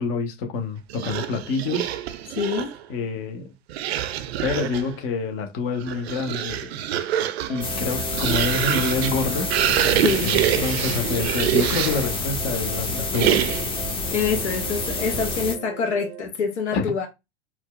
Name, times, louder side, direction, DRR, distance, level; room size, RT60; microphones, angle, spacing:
voice 1, 0.0-1.9 2.9-3.5 4.4-6.7 7.5-10.0 10.2-13.4 16.7-16.8, left 4 dB, 40° left, 0.9 m, -27 dB
sound 1, 0.9-2.8 3.7-4.9 5.7-12.2 13.1-13.8, right 11 dB, 60° right, 0.5 m, -25 dB
voice 2, 2.4-2.7 10.0-10.3 14.1-17.1, left 5 dB, 70° left, 0.8 m, -25 dB
sound 2, 7.5-16.2, right 7 dB, 10° right, 0.3 m, -39 dB
sound 3, 7.6-15.6, left 3 dB, 15° left, 0.8 m, -28 dB
4.2 x 2.3 x 2.4 m
figure-of-eight pair, 85°, 35 cm